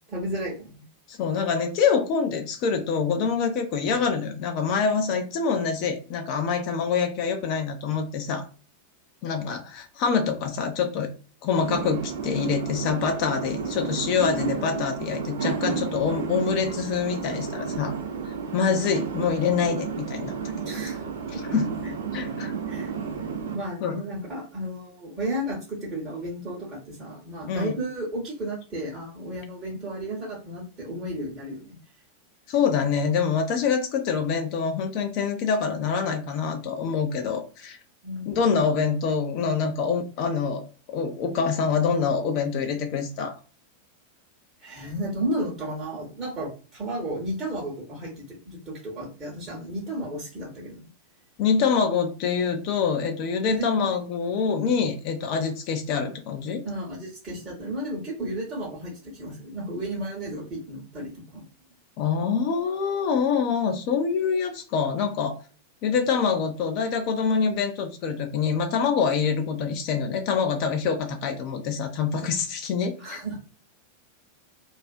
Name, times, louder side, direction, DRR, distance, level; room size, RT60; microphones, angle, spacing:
voice 1, 0.1-0.8 20.6-21.0 21.3-21.4 21.8-21.9 22.7-22.9 23.5-31.8 38.0-38.4 44.6-50.9 53.5-53.7 56.6-61.5 73.0-73.4, right 1 dB, 25° right, -4 dB, 0.8 m, -33 dB
voice 2, 1.1-8.5 9.2-11.1 11.4-17.9 18.5-20.3 21.3-21.7 22.1-22.5 23.8-24.0 27.5-27.7 32.5-37.8 38.3-40.6 40.9-43.4 51.4-56.6 62.0-65.4 65.8-73.2, left 6 dB, 45° left, 5 dB, 0.4 m, -25 dB
sound 1, 11.6-23.6, right 6 dB, 65° right, 0.5 m, -32 dB
2.4 x 2.4 x 2.3 m, 0.36 s
figure-of-eight pair, 90°, 0 cm